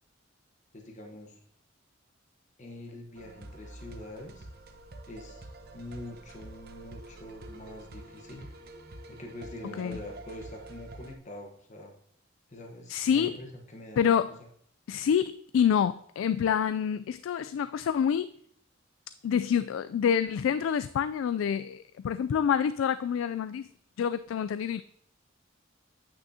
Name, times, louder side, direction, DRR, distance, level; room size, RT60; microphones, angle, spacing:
voice 1, 0.7-1.3 2.6-4.5 5.1-8.5 9.1-11.9 12.5-14.1, left 1 dB, 40° left, 1 dB, 1.1 m, -44 dB
sound 1, 3.2-11.2, right 1 dB, 55° right, 0.9 m, -47 dB
voice 2, 9.6-10.0 12.9-13.4 14.0-14.3 14.9-18.3 19.2-23.7 24.0-24.8, left 8 dB, 90° left, 14 dB, 0.3 m, -27 dB
8.9 x 6.1 x 2.7 m, 0.68 s
head